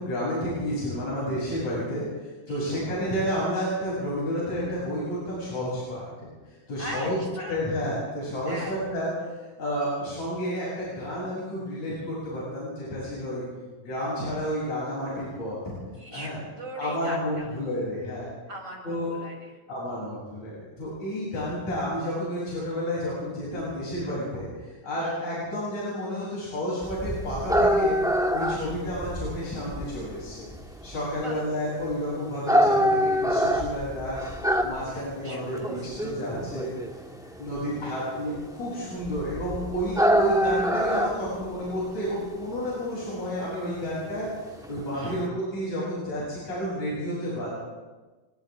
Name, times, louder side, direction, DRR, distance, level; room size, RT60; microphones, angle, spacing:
voice 1, 0.0-6.3 6.7-9.1 9.6-13.4 13.8-15.6 16.1-16.4 16.8-18.3 18.8-19.1 19.7-28.0 28.3-30.5 30.8-34.3 34.6-36.7 37.4-47.5, equal, 70° left, -7 dB, 9.5 m, -31 dB
voice 2, 2.5-2.8 6.8-7.6 8.5-8.8 15.9-17.5 18.5-19.6 19.9-20.0 25.0-25.2 28.5-28.8 31.1-31.4 34.8-35.8 37.5-38.0 44.9-45.2, right 1 dB, 25° right, 0 dB, 6.0 m, -40 dB
sound 1, 26.8-45.3, equal, ahead, 1.1 m, -26 dB
30.0 x 25.5 x 3.8 m, 1.3 s
omnidirectional pair, 3.4 m